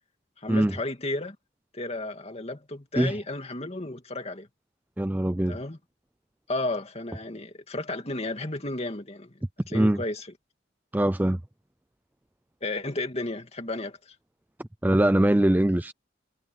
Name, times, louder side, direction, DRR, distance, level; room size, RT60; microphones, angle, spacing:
voice 1, 0.4-1.4 1.7-4.5 5.5-5.8 6.5-10.3 12.6-14.2, left 2 dB, 30° left, 2.6 m, -33 dB
voice 2, 5.0-5.6 9.7-10.0 10.9-11.4 14.8-15.9, right 1 dB, 10° right, 0.4 m, -22 dB
head